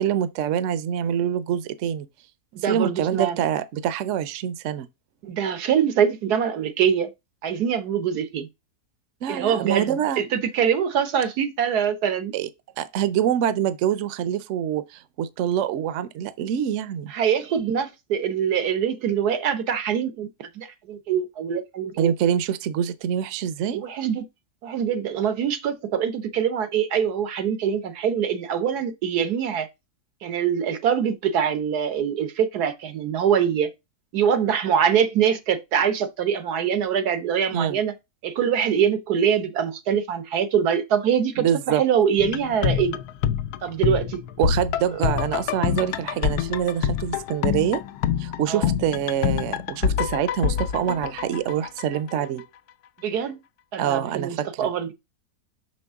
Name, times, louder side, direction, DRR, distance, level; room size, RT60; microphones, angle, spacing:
voice 1, 0.0-2.1 2.6-4.9 9.2-10.2 12.3-12.5 12.8-17.1 22.0-23.8 37.5-37.8 41.4-41.8 44.4-47.8 48.2-52.5 53.8-54.7, right 9 dB, 60° right, 0.9 m, -25 dB
voice 2, 2.6-3.4 5.2-7.1 7.4-8.5 9.3-12.3 17.1-20.3 20.5-22.1 23.7-24.2 24.6-29.7 30.2-33.7 34.1-37.9 38.2-43.0 43.6-44.2 48.5-48.7 53.0-53.4 53.7-54.9, right 8 dB, 85° right, 1.5 m, -24 dB
sound 1, 42.2-52.1 52.4-52.5, left 8 dB, 85° left, 1.1 m, -26 dB
6.3 x 5.3 x 3.6 m
omnidirectional pair, 1.6 m